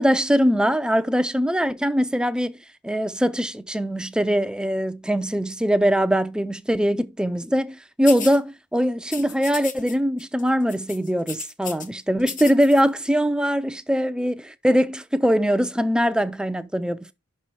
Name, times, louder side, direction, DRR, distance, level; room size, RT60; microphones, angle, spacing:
voice 1, 0.0-2.6 2.8-17.1, equal, 5° right, 0.4 m, -22 dB
sound 1, 8.1-8.4 9.1-9.9 10.2-10.4 10.7-11.9 12.2-12.8, left 6 dB, 35° left, 0.8 m, -35 dB
5.9 x 5.5 x 4.6 m
head